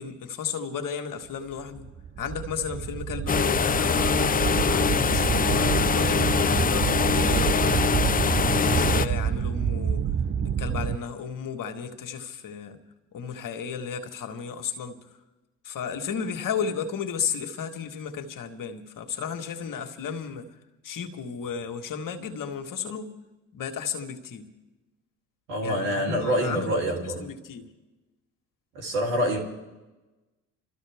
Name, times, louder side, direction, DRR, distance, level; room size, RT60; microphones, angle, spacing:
voice 1, 0.0-1.9 2.2-8.0 8.3-10.1 10.4-12.8 13.1-15.2 15.6-20.6 20.8-23.1 23.5-24.5 25.6-27.7, left 6 dB, 55° left, 1.8 m, -34 dB
sound 1, 1.8-11.0, right 8 dB, 30° right, 0.8 m, -28 dB
sound 2, 3.3-9.1, left 6 dB, 20° left, 0.6 m, -23 dB
voice 2, 25.5-27.3 28.7-29.4, equal, 85° right, 3.3 m, -26 dB
27.5 x 13.5 x 3.6 m
hypercardioid pair, 55°, 39 cm